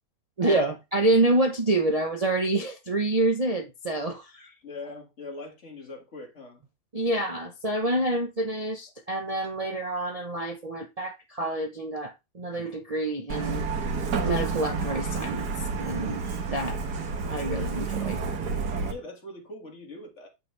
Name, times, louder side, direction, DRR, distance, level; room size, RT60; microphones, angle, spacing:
voice 1, 0.4-4.5 6.9-13.7 14.2-15.5 15.8-16.2 16.5-16.8 17.3-18.2, right 2 dB, 35° right, 0.7 m, -27 dB
voice 2, 4.6-6.6 18.9-20.3, left 2 dB, 45° left, 2.1 m, -41 dB
Truck, 13.3-18.9, right 4 dB, 80° right, 1.8 m, -30 dB
7.9 x 5.6 x 3.3 m
omnidirectional pair, 1.7 m